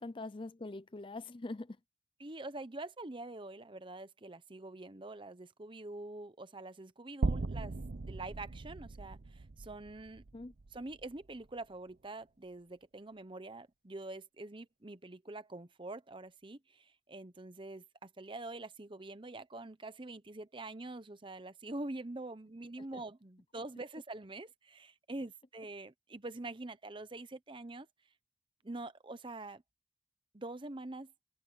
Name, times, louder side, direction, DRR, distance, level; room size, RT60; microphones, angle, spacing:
voice 1, 0.0-1.8 10.3-10.5 22.9-23.0, left 2 dB, 30° left, 0.5 m, -43 dB
voice 2, 2.2-7.8 8.0-10.2 10.7-27.9 28.6-29.6 30.3-31.1, right 2 dB, 30° right, 0.9 m, -45 dB
sound 1, 7.2-11.5, right 3 dB, 55° right, 0.6 m, -38 dB
head